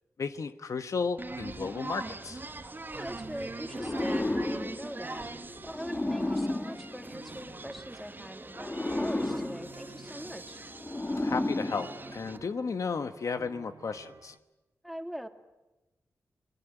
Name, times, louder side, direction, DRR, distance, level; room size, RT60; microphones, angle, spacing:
voice 1, 0.2-2.4 11.2-14.3, left 5 dB, 70° left, 10 dB, 1.2 m, -34 dB
sound 1, 1.2-12.4, right 2 dB, 35° right, 2.2 m, -43 dB
sound 2, 1.3-14.4, right 5 dB, 65° right, 1.5 m, -53 dB
voice 2, 2.9-10.6 14.8-15.3, equal, ahead, 7 dB, 2.6 m, -42 dB
sound 3, 3.7-7.8 8.5-12.5, left 2 dB, 25° left, 1.9 m, -33 dB
27.5 x 19.5 x 9.2 m, 1.0 s
cardioid pair, 50°, 6 cm